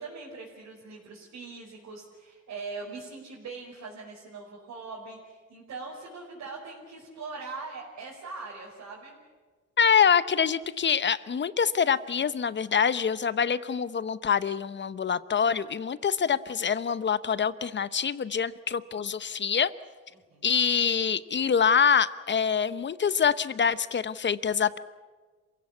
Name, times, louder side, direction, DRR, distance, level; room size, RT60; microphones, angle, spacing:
voice 1, 0.0-9.2 20.1-20.6, right 4 dB, 65° right, -5 dB, 5.3 m, -41 dB
voice 2, 9.8-19.7 20.4-24.8, left 7 dB, 40° left, 16 dB, 0.9 m, -25 dB
26.5 x 16.5 x 8.4 m, 1.4 s
cardioid pair, 90°, 30 cm